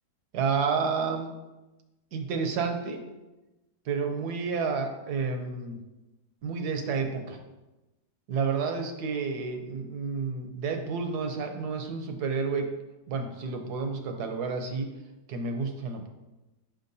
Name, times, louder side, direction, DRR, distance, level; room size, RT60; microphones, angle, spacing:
voice 1, 0.3-1.3 2.1-3.0 3.9-5.8 6.4-7.4 8.3-12.7 13.1-14.9 15.3-16.1, right 5 dB, 70° right, 5 dB, 1.2 m, -30 dB
6.4 x 5.8 x 2.7 m, 1.0 s
omnidirectional pair, 1.8 m